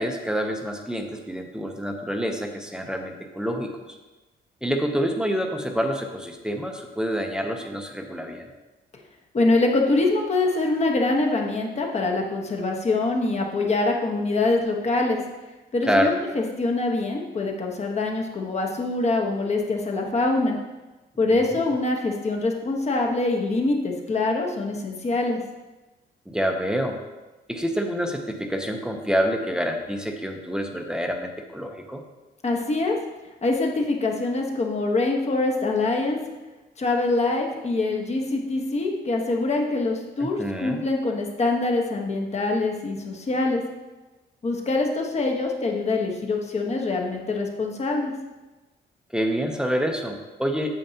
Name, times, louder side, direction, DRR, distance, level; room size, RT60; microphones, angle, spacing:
voice 1, 0.0-3.7 4.6-8.5 15.9-16.1 21.2-21.5 26.3-27.0 27.5-32.0 40.2-40.8 49.1-50.7, equal, 5° right, 3 dB, 0.8 m, -27 dB
voice 2, 9.3-15.2 15.7-20.6 21.2-25.4 32.4-33.0 33.4-36.2 36.8-43.6 44.4-48.1, left 2 dB, 35° left, 1 dB, 1.3 m, -24 dB
8.9 x 7.6 x 2.9 m, 1.1 s
cardioid pair, 125°, 19 cm